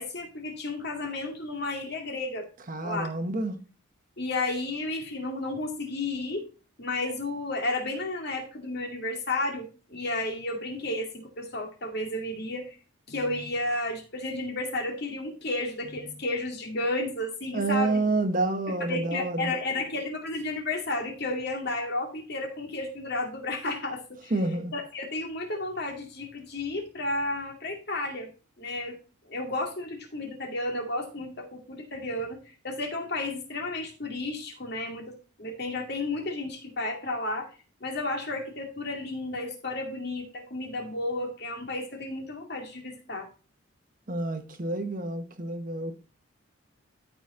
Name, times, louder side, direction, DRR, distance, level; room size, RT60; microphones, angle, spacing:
voice 1, 0.0-2.5 2.8-3.1 4.2-6.4 6.8-12.8 13.1-18.0 18.7-24.3 24.7-28.3 28.6-29.0 29.3-32.4 32.6-37.5 37.8-43.3, left 2 dB, 50° left, 2.5 m, -32 dB
voice 2, 2.7-3.6 17.5-19.5 24.3-24.7 44.1-45.9, right 2 dB, 40° right, 1.1 m, -28 dB
13.0 x 5.1 x 3.8 m
head